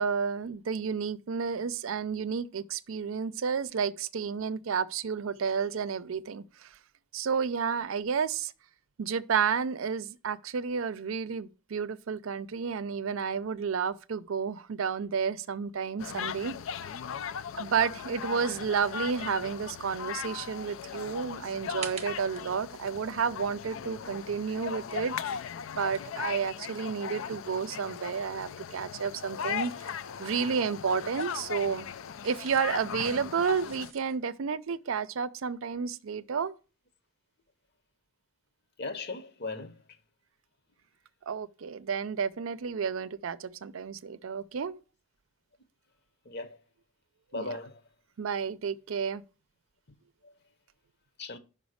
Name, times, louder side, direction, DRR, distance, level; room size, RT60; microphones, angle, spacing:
voice 1, 0.0-6.7 7.1-8.5 9.0-16.6 17.5-25.2 25.7-29.7 30.2-31.9 32.2-36.5 41.3-44.8 47.4-47.6 48.2-49.2, right 6 dB, 80° right, 0.5 m, -31 dB
sound 1, 16.0-33.9, left 7 dB, 75° left, 0.4 m, -38 dB
sound 2, 21.3-27.2 27.5-34.2, right 7 dB, 30° right, 0.8 m, -50 dB
voice 2, 38.8-39.7 46.3-46.6 47.3-47.8 50.2-50.3 51.2-51.4, left 3 dB, 55° left, 0.9 m, -37 dB
5.4 x 5.2 x 6.4 m
head